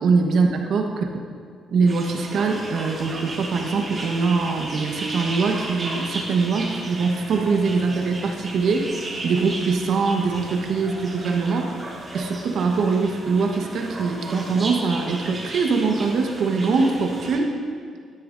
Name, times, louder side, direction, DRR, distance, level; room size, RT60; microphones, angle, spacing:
voice 1, 0.0-1.1 1.7-8.9 9.2-11.7 12.1-17.5, right 4 dB, 65° right, 3 dB, 1.2 m, -22 dB
sound 1, 1.8-17.4, right 2 dB, 30° right, 2.8 m, -35 dB
12.5 x 10.0 x 2.6 m, 2.2 s
cardioid pair, 90°, 0 cm